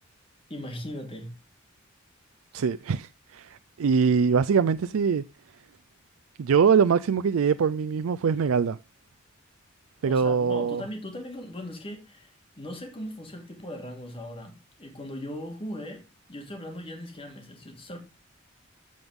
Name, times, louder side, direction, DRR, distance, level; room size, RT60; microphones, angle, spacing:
voice 1, 0.5-1.3 10.1-18.0, left 1 dB, 25° left, 2.8 m, -39 dB
voice 2, 2.5-5.2 6.4-8.8 10.0-10.8, right 6 dB, 85° right, 0.4 m, -23 dB
14.0 x 5.4 x 3.6 m
head